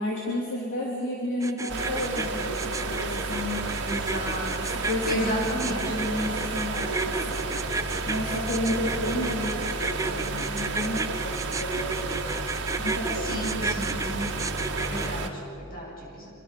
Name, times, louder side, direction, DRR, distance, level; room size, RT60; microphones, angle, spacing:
voice 1, 0.0-3.7 4.9-5.4 5.9-7.6 8.1-12.3 12.8-13.4, left 1 dB, 55° left, -4 dB, 4.0 m, -31 dB
sound 1, 1.4-15.1, right 3 dB, 15° right, 0.7 m, -32 dB
sound 2, 1.7-15.3, right 3 dB, 55° right, 2.2 m, -32 dB
voice 2, 3.8-4.7 5.0-6.0 13.1-16.3, equal, 40° left, -1 dB, 7.4 m, -34 dB
27.0 x 23.5 x 7.1 m, 2.6 s
head